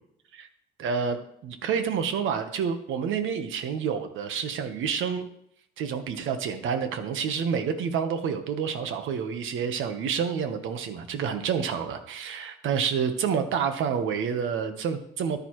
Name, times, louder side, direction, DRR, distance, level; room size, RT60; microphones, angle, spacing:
voice 1, 0.8-5.3 5.8-15.4, right 7 dB, 80° right, 8 dB, 1.2 m, -28 dB
14.0 x 9.5 x 3.2 m, 0.72 s
cardioid pair, 90°, 20 cm